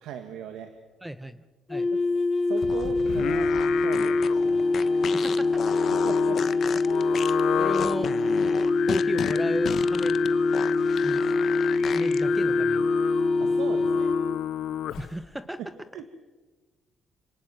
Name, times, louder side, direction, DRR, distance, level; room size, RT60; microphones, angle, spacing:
voice 1, 0.0-0.7 1.9-2.0 2.4-4.8 5.9-6.4 6.6-6.8 13.4-14.1 15.6-16.2, right 8 dB, 90° right, 6 dB, 1.9 m, -39 dB
voice 2, 1.0-1.4 1.7-1.9 5.2-5.8 7.6-8.1 8.9-10.1 11.0-11.2 11.8-12.9 15.0-15.6, right 1 dB, 5° right, 11 dB, 1.1 m, -34 dB
sound 1, 1.7-14.4, left 3 dB, 25° left, 0.7 m, -24 dB
sound 2, 2.6-12.2, left 7 dB, 60° left, 1.1 m, -35 dB
Singing, 3.1-15.2, left 10 dB, 80° left, 0.9 m, -31 dB
29.5 x 18.5 x 7.7 m, 1.3 s
cardioid pair, 90°, 0 cm